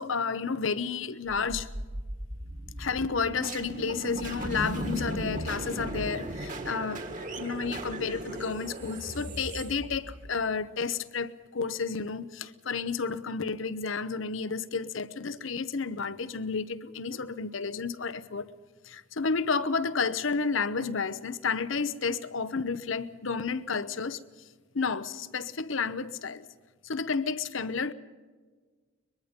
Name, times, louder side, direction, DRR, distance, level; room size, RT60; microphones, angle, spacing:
voice 1, 0.0-1.7 2.8-7.1 7.4-18.5 18.8-24.2 24.7-26.4 26.8-27.9, left 5 dB, 75° left, 0.9 m, -31 dB
sound 1, 1.3-10.4, right 1 dB, 40° right, 1.9 m, -37 dB
23.0 x 22.0 x 5.2 m
head